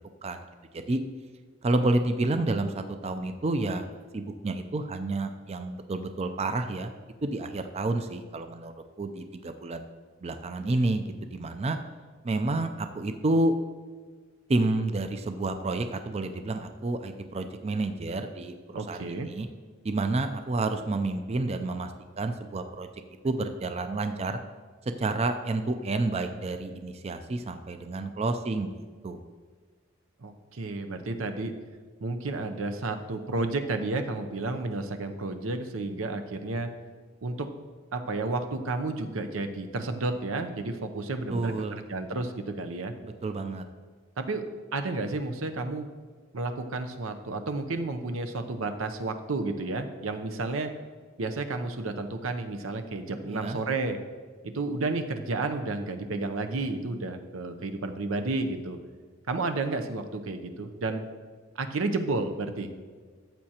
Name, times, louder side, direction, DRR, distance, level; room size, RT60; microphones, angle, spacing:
voice 1, 1.6-3.9 4.1-6.9 7.2-9.9 10.2-11.8 12.2-13.6 14.5-19.0 19.3-19.5 19.8-21.9 22.2-22.9 23.2-24.4 25.0-28.7 29.0-29.2 41.3-41.8 43.0-43.6 53.3-53.6, right 2 dB, 30° right, 7 dB, 0.4 m, -29 dB
voice 2, 18.7-19.3 30.2-31.5 32.0-36.7 37.2-37.5 37.9-41.5 41.9-42.9 44.2-44.4 44.7-45.9 46.3-50.7 51.2-54.0 54.4-58.8 59.3-61.0 61.6-62.8, right 3 dB, 90° right, 7 dB, 0.7 m, -31 dB
13.5 x 7.5 x 2.9 m, 1.5 s
head